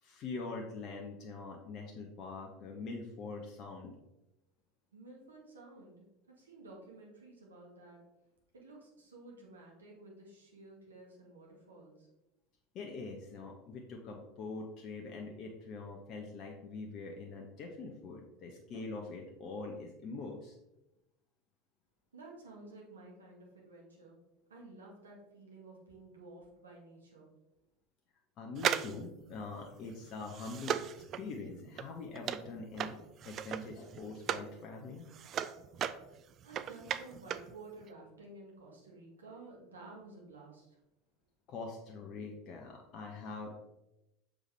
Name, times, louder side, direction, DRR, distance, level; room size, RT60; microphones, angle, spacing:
voice 1, 0.0-3.9 12.7-20.6 28.4-30.8 31.1-32.9 33.2-35.0 41.5-43.6, left 3 dB, 45° left, 1 dB, 0.8 m, -44 dB
voice 2, 4.9-8.0 8.5-12.1 22.1-24.2 24.5-27.3 36.4-40.8, right 2 dB, 75° right, -2 dB, 1.6 m, -53 dB
sound 1, 28.6-34.5 34.9-37.5 37.8-37.9, right 9 dB, 40° right, 0.3 m, -37 dB
6.4 x 5.0 x 3.2 m, 0.93 s
figure-of-eight pair, 75°, 0 cm